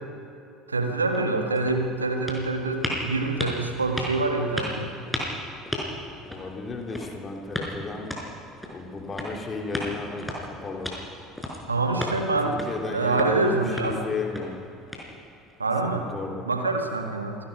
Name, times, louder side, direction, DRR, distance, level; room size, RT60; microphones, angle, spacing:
voice 1, 0.7-4.9 11.7-14.0 15.6-16.1 16.4-17.4, right 3 dB, 80° right, 3 dB, 1.8 m, -26 dB
sound 1, 1.1-15.5, left 1 dB, 5° left, 5.5 m, -36 dB
voice 2, 6.3-8.1 8.7-10.9 12.0-12.1 12.4-14.7 15.9-16.5, left 4 dB, 25° left, 1 dB, 3.2 m, -34 dB
27.0 x 18.0 x 5.4 m, 2.7 s
figure-of-eight pair, 65°, 0 cm